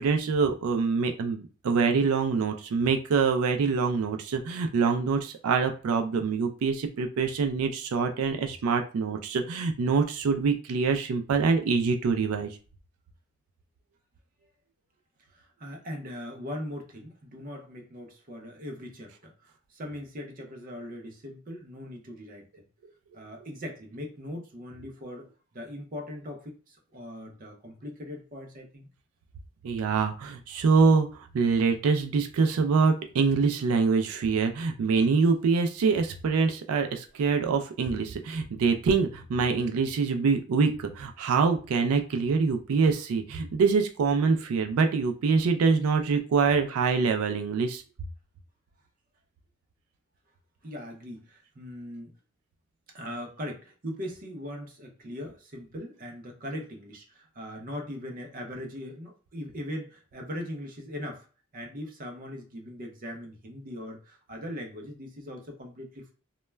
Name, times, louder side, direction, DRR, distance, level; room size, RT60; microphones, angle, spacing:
voice 1, 0.0-12.6 29.6-31.1 31.3-47.8, right 5 dB, 90° right, 5 dB, 0.4 m, -25 dB
voice 2, 15.3-22.5 23.1-25.3 25.5-28.9 50.6-52.1 52.9-61.3 61.5-66.1, equal, 40° right, 2 dB, 0.6 m, -40 dB
2.2 x 2.1 x 3.1 m, 0.37 s
head